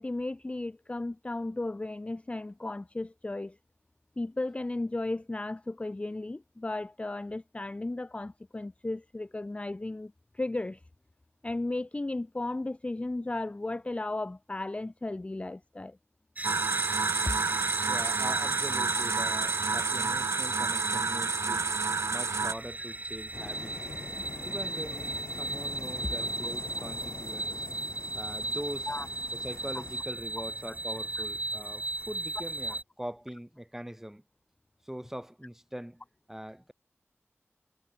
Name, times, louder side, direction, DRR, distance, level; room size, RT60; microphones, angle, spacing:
voice 1, 0.0-3.6 4.2-10.8 11.4-16.0 28.9-29.1 30.7-30.8, left 2 dB, 25° left, 0.4 m, -35 dB
sound 1, 16.4-32.8, right 2 dB, 30° right, 0.9 m, -36 dB
sound 2, 16.4-22.5, right 4 dB, 80° right, 0.7 m, -29 dB
voice 2, 17.9-21.7 22.1-23.8 24.4-27.7 28.1-28.9 29.3-34.2 34.8-36.0 36.3-36.7, equal, 10° right, 3.8 m, -42 dB
sound 3, 23.3-30.0, left 4 dB, 75° left, 4.2 m, -44 dB
wide cardioid pair, 55°, 5 cm